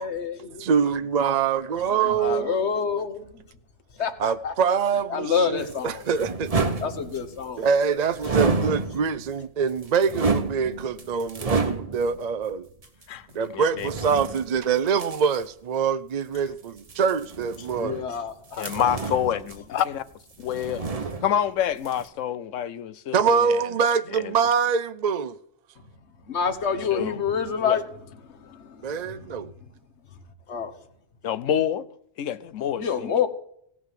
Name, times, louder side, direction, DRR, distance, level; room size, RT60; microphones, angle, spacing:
voice 1, 0.0-0.4 2.2-3.4 4.0-4.5 5.1-6.2 6.8-8.0 8.4-8.5 17.8-18.8 26.3-27.8 28.3-29.3 30.5-30.8 32.8-33.3, left 6 dB, 65° left, 1.5 m, -28 dB
voice 2, 0.7-2.6 4.2-6.5 7.4-12.7 13.3-18.0 23.1-25.4 28.8-29.5, right 6 dB, 50° right, 0.5 m, -24 dB
sound 1, 5.6-7.5 8.2-9.3 9.7-12.2 12.8-12.9 13.7-15.4 16.8-18.2 18.5-20.1 20.4-21.6 21.8-22.0, right 4 dB, 30° right, 1.1 m, -29 dB
voice 3, 13.5-13.9 18.6-20.0 20.4-20.9 21.2-23.6 24.2-24.3 26.9-27.2 27.6-27.8 31.2-31.9 32.2-33.1, left 10 dB, 90° left, 1.1 m, -27 dB
17.0 x 6.2 x 7.5 m
omnidirectional pair, 1.3 m